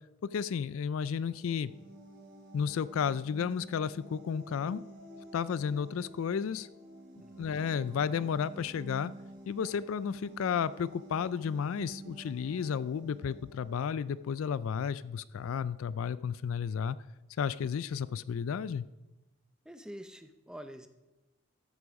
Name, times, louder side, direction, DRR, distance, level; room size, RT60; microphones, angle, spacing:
voice 1, 0.2-1.7 2.5-4.8 5.3-6.7 7.4-9.1 9.5-17.0 17.4-18.9, left 7 dB, 75° left, 17 dB, 0.3 m, -32 dB
sound 1, 0.9-14.5, right 1 dB, 45° right, 3.8 m, -50 dB
voice 2, 7.2-7.6 19.6-20.9, equal, 5° right, 8 dB, 0.6 m, -47 dB
13.5 x 8.4 x 5.2 m, 1.0 s
head